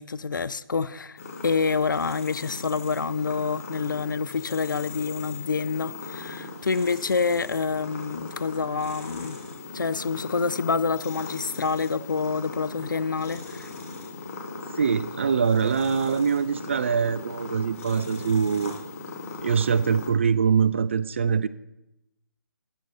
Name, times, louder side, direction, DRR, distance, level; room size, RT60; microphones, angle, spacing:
voice 1, 0.0-9.4 9.7-13.7, left 5 dB, 60° left, 0.5 m, -27 dB
sound 1, 1.2-20.1, left 3 dB, 40° left, 2.2 m, -39 dB
voice 2, 14.8-18.8 19.4-21.5, right 6 dB, 35° right, 0.3 m, -23 dB
13.0 x 8.2 x 4.2 m
figure-of-eight pair, 145°, 12 cm